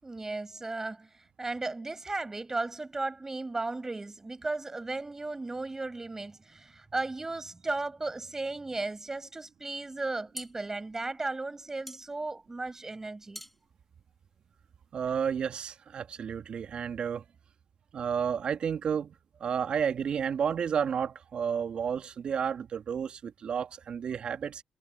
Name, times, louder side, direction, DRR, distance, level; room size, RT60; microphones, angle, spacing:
voice 1, 0.0-13.4, right 2 dB, 25° right, 6.2 m, -35 dB
sound 1, 10.0-14.9, equal, 5° left, 5.8 m, -49 dB
voice 2, 14.9-17.2 17.9-19.1 19.4-24.6, right 7 dB, 60° right, 2.6 m, -31 dB
supercardioid pair, 60°, 2 cm